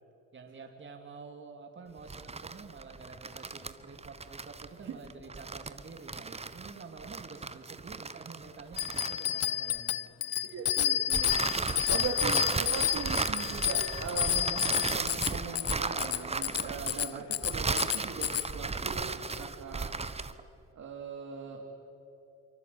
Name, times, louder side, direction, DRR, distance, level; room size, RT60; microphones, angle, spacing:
voice 1, 0.3-10.1 10.4-10.5, right 4 dB, 40° right, 4 dB, 2.7 m, -48 dB
sound 1, 2.0-9.8 11.1-20.4, right 4 dB, 20° right, 1.1 m, -35 dB
Bicycle bell, 8.8-18.5, left 12 dB, 55° left, 0.6 m, -30 dB
voice 2, 10.4-20.2 20.7-21.6, right 5 dB, 65° right, 0 dB, 3.1 m, -40 dB
25.0 x 24.5 x 8.7 m, 2.9 s
cardioid pair, 90°, 30 cm